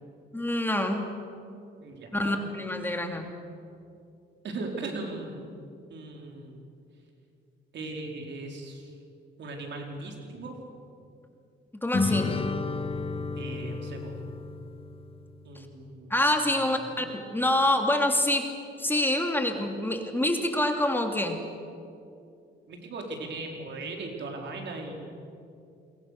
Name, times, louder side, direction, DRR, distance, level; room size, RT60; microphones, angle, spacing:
voice 1, 0.3-1.1 2.1-3.3 11.8-12.3 16.1-18.5 18.8-21.4, left 1 dB, 10° left, 4 dB, 2.7 m, -26 dB
voice 2, 1.8-2.4 4.4-5.4 5.9-6.6 7.7-8.9 9.4-10.5 13.4-14.1 15.4-16.2 16.5-17.0 22.7-24.9, right 3 dB, 65° right, 2 dB, 4.7 m, -38 dB
sound 1, 11.9-15.5, left 4 dB, 30° left, 1.2 m, -32 dB
28.5 x 22.5 x 6.8 m, 2.5 s
cardioid pair, 90°, 20 cm